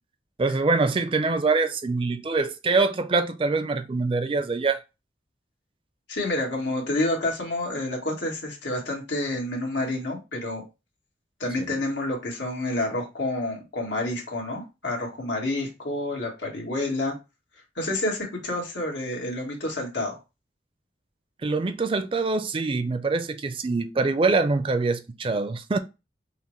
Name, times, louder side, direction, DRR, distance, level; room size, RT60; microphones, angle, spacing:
voice 1, 0.4-4.8 11.6-11.7 21.4-25.8, right 3 dB, 30° right, 0.4 m, -24 dB
voice 2, 6.1-10.6 11.4-17.1 17.7-20.2, left 1 dB, 90° left, 1.6 m, -29 dB
5.5 x 2.1 x 3.1 m
head